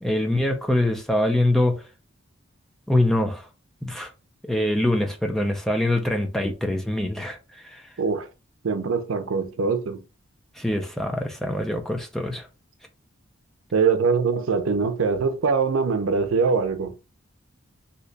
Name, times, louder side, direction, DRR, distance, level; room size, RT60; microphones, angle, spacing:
voice 1, 0.0-1.8 2.9-3.5 3.8-4.1 4.4-7.8 10.6-12.5, left 1 dB, ahead, 0.4 m, -24 dB
voice 2, 8.0-8.3 8.6-10.0 13.7-16.9, right 5 dB, 80° right, 0.5 m, -23 dB
2.7 x 2.2 x 3.9 m
head